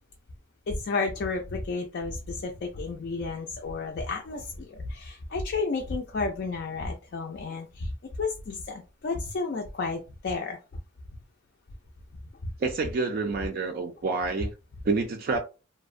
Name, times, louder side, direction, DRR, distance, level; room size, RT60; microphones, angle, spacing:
voice 1, 0.7-7.9 8.2-10.6 12.4-12.5, left 3 dB, 55° left, 0.3 m, -32 dB
voice 2, 12.6-14.5 14.8-15.4, right 3 dB, 45° right, 0.3 m, -28 dB
2.5 x 2.0 x 2.4 m
head